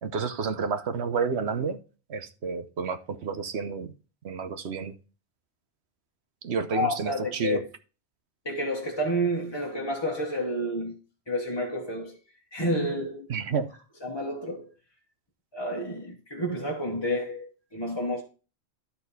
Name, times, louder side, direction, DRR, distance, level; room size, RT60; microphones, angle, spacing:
voice 1, 0.0-1.8 2.1-3.9 4.2-4.9 6.4-7.6 13.3-13.7, right 5 dB, 75° right, 1.1 m, -30 dB
voice 2, 6.7-7.7 8.4-10.9 11.3-12.2 12.5-13.3 14.0-14.7 15.5-18.2, equal, 25° left, 1.2 m, -30 dB
12.0 x 4.4 x 4.1 m
omnidirectional pair, 1.1 m